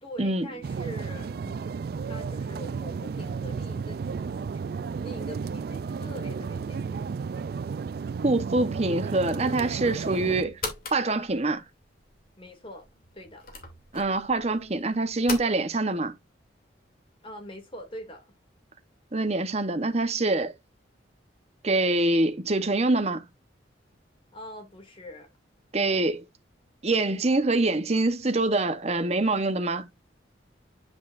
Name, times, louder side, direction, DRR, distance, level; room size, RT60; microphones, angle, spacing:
voice 1, 0.0-4.5 5.0-7.0 12.4-13.5 17.2-18.3 24.3-25.3, equal, 30° left, 2.3 m, -43 dB
sound 1, 0.6-10.4, right 5 dB, 55° right, 0.3 m, -33 dB
voice 2, 8.2-10.6 10.9-11.6 13.9-16.1 19.1-20.5 21.6-23.3 25.7-26.2 26.8-29.9, right 2 dB, 35° right, 1.0 m, -25 dB
sound 2, 9.8-15.5, left 3 dB, 50° left, 2.6 m, -40 dB
9.7 x 4.8 x 2.5 m
head